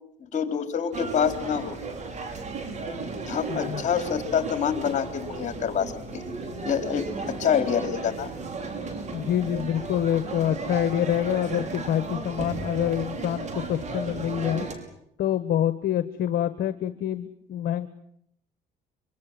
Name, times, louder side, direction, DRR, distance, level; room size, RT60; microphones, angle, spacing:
voice 1, 0.2-1.8 3.3-6.2 6.6-8.3, left 7 dB, 45° left, 7 dB, 4.0 m, -27 dB
sound 1, 0.9-14.7, right 3 dB, 45° right, 6.1 m, -34 dB
voice 2, 3.5-3.8 9.1-14.7 15.2-17.9, left 11 dB, 60° left, 12 dB, 1.4 m, -26 dB
25.5 x 25.0 x 7.8 m, 0.72 s
cardioid pair, 110°, 17 cm